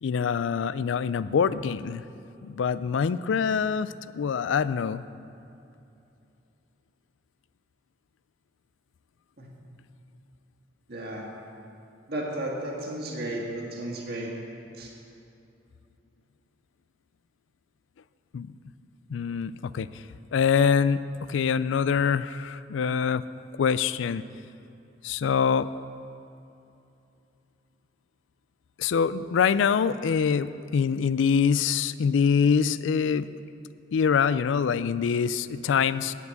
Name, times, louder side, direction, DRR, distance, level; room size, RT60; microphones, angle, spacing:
voice 1, 0.0-2.0 2.4-3.9 4.1-5.0 18.3-18.5 19.1-19.9 20.3-23.2 23.6-24.2 25.0-25.7 28.8-33.3 33.9-36.1, left 6 dB, 90° left, 16 dB, 0.4 m, -24 dB
voice 2, 10.9-11.3 12.1-14.3 14.7-14.9, right 1 dB, 55° right, -2 dB, 1.7 m, -33 dB
9.4 x 8.0 x 8.1 m, 2.7 s
head